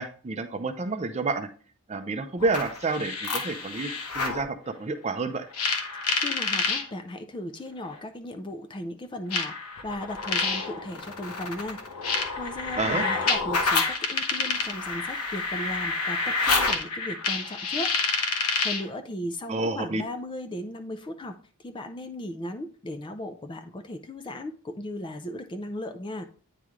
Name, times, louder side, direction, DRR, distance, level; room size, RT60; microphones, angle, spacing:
voice 1, 0.0-1.5 1.9-5.5 12.8-13.1 19.5-20.0, right 3 dB, 30° right, 7 dB, 0.5 m, -29 dB
sound 1, 2.4-4.4 5.5-6.8 7.9-8.0 9.3-18.9, left 4 dB, 85° left, 1.1 m, -28 dB
voice 2, 6.2-9.6 9.8-11.8 12.4-17.9 18.6-21.4 21.6-26.2, left 1 dB, 20° left, 7 dB, 0.4 m, -36 dB
9.2 x 3.2 x 3.6 m, 0.41 s
head